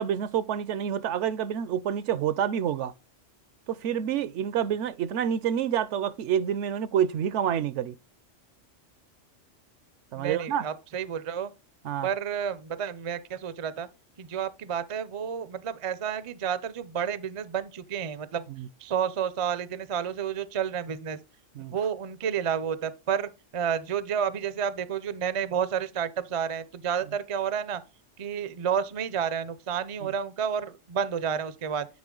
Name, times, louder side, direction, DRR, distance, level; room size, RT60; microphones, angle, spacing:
voice 1, 0.0-2.9 3.7-7.9 10.1-10.6 11.8-12.1 18.6-18.7 21.5-21.7 30.0-30.1, right 9 dB, 75° right, 0.9 m, -28 dB
voice 2, 10.1-11.5 12.0-13.9 14.2-18.5 18.8-21.2 21.7-27.8 28.2-31.9, right 8 dB, 45° right, 0.4 m, -30 dB
9.6 x 3.9 x 3.8 m
omnidirectional pair, 1.3 m